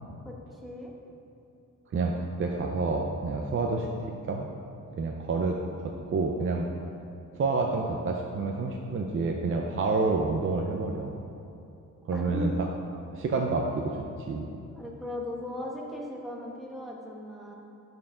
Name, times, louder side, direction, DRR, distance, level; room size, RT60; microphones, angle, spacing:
voice 1, 0.2-0.9 12.1-12.5 14.7-17.5, left 1 dB, ahead, -3 dB, 1.1 m, -38 dB
voice 2, 1.9-3.9 4.3-4.5 5.0-5.6 6.1-6.7 7.3-11.1 12.0-12.7 13.1-14.0 14.3-14.5, right 3 dB, 40° right, 1 dB, 0.5 m, -28 dB
11.5 x 4.4 x 3.8 m, 2.8 s
wide cardioid pair, 150°, 31 cm